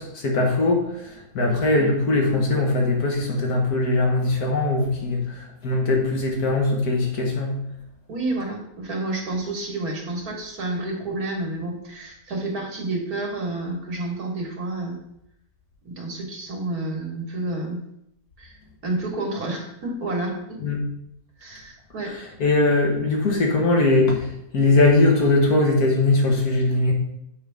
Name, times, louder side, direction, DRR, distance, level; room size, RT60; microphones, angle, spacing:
voice 1, 0.0-7.5 20.6-20.8 22.0-26.9, left 2 dB, 90° left, 0 dB, 1.9 m, -21 dB
voice 2, 8.1-15.0 15.9-17.8 18.4-18.6 18.8-20.7 21.4-22.1, right 2 dB, 80° right, 0 dB, 2.0 m, -30 dB
8.0 x 5.3 x 3.4 m, 0.77 s
omnidirectional pair, 1.6 m